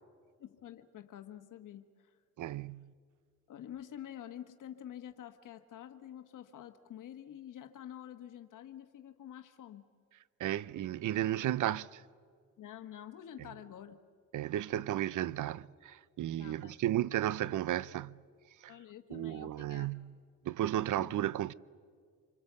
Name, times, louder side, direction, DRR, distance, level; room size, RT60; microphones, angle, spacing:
voice 1, 0.4-2.2 3.5-9.8 12.6-14.0 16.4-16.8 18.7-20.0 21.0-21.3, left 10 dB, 75° left, 1.5 m, -48 dB
voice 2, 2.4-2.9 10.4-12.0 14.3-18.2 18.6-18.7 19.1-20.1 20.4-21.5, right 13 dB, 70° right, 0.7 m, -34 dB
27.0 x 25.0 x 8.1 m
cardioid pair, 105°, 32 cm